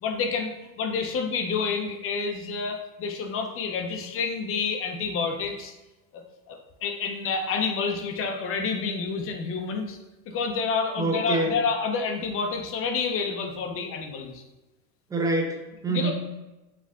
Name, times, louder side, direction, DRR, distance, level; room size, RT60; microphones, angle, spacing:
voice 1, 0.0-5.7 6.5-10.0 10.3-14.4 15.9-16.1, left 5 dB, 30° left, 4 dB, 0.6 m, -29 dB
voice 2, 11.0-11.6 15.1-16.1, right 2 dB, 10° right, 2 dB, 0.4 m, -26 dB
4.4 x 2.4 x 3.6 m, 1.1 s
hypercardioid pair, 105°, 44 cm